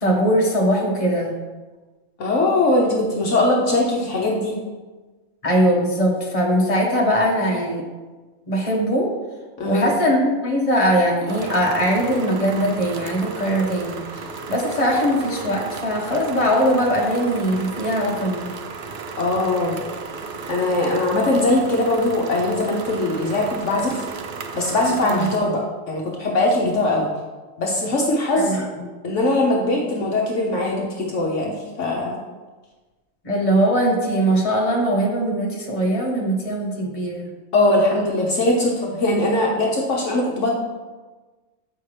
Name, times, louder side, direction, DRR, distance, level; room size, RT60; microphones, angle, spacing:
voice 1, 0.0-1.4 5.4-7.8 8.5-9.1 9.6-18.5 25.0-25.3 28.4-28.9 33.2-37.3, equal, 25° left, -3 dB, 1.2 m, -21 dB
voice 2, 2.2-4.6 9.6-9.9 19.2-19.8 20.5-24.0 24.5-27.1 27.6-28.5 29.0-32.2 37.5-40.5, left 2 dB, 60° left, -1 dB, 1.1 m, -21 dB
sound 1, 11.3-25.4, right 4 dB, 80° right, 0.4 m, -34 dB
8.0 x 5.6 x 3.3 m, 1.3 s
omnidirectional pair, 1.5 m